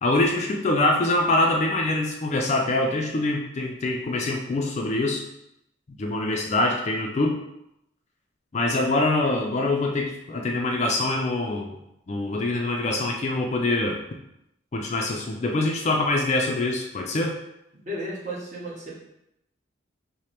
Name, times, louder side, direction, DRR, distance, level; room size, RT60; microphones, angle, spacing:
voice 1, 0.0-5.2 6.0-7.4 8.5-11.8 12.1-14.0 14.7-17.4, left 2 dB, 35° left, 1 dB, 0.3 m, -24 dB
voice 2, 17.8-18.9, right 1 dB, 40° right, -5 dB, 1.0 m, -33 dB
4.9 x 2.0 x 2.9 m, 0.82 s
head